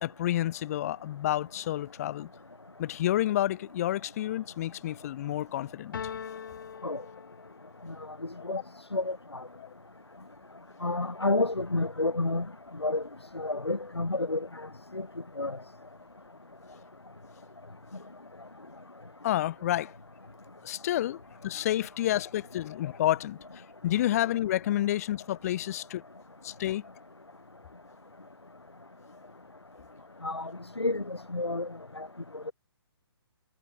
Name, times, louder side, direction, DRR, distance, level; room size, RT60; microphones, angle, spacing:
voice 1, 0.0-2.3 2.8-5.9 9.6-9.7 19.2-19.9 20.6-21.2 21.4-26.0 26.4-26.8, left 13 dB, 35° left, 1.5 m, -29 dB
sound 1, 5.9-7.9, left 7 dB, 50° left, 6.0 m, -41 dB
voice 2, 10.8-12.5 12.8-13.0 13.3-14.4 14.9-15.1 15.4-15.6 30.2-30.5 30.8-31.7 32.0-32.1, left 2 dB, 85° left, 2.3 m, -29 dB
figure-of-eight pair, 130°, 14 cm